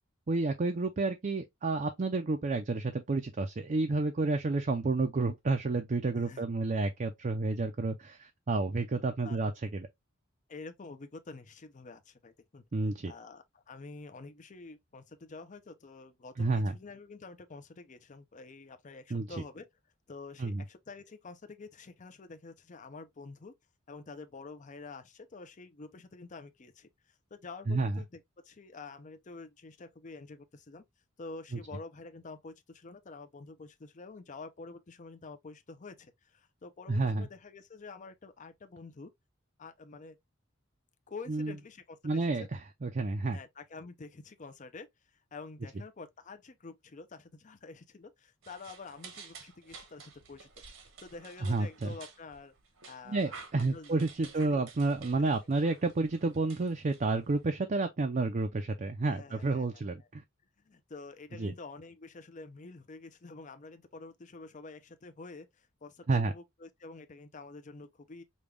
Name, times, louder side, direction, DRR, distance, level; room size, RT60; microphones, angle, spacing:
voice 1, 0.3-9.9 12.7-13.1 16.4-16.8 19.1-19.3 20.4-20.6 27.7-28.0 36.9-37.3 41.3-41.5 42.0-43.4 51.4-51.9 53.1-60.2 61.4-61.5 66.1-66.3, right 3 dB, 40° right, 0.5 m, -30 dB
voice 2, 6.1-6.4 9.2-9.4 10.5-12.6 13.0-19.7 20.1-23.5 23.9-30.8 31.2-39.1 39.6-40.2 41.1-42.5 43.3-50.5 51.0-52.5 52.9-54.6 55.2-55.3 59.0-60.1 60.6-68.2, left 3 dB, 40° left, 0.6 m, -48 dB
sound 1, 48.4-57.4, right 5 dB, 75° right, 1.0 m, -52 dB
5.2 x 2.3 x 3.2 m
head